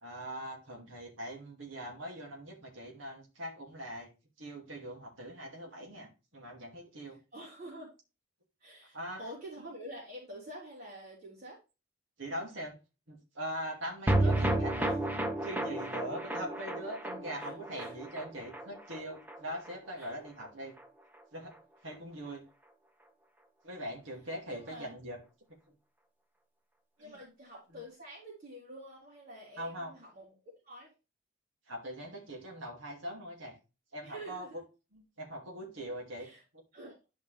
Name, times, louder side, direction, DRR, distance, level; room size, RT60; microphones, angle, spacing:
voice 1, 0.0-4.1 4.4-7.2 8.9-9.2 12.2-12.8 13.1-14.7 15.4-20.7 21.3-21.5 21.8-22.4 23.6-25.2 25.7-25.8 27.0-27.2 27.7-27.8 29.6-29.9 31.7-33.6 33.9-34.6 34.9-36.3, equal, 65° right, 0 dB, 2.4 m, -42 dB
voice 2, 7.1-7.9 8.6-11.6 14.2-15.0 17.4-17.9 20.0-20.2 24.5-24.9 27.0-30.3 30.6-30.9 34.0-34.6 36.1-36.4 36.7-36.9, right 1 dB, 35° right, -8 dB, 3.8 m, -47 dB
sound 1, 14.1-20.5 20.8-20.9 21.1-21.2, right 1 dB, 10° right, 0.7 m, -33 dB
11.5 x 5.3 x 3.3 m, 0.30 s
head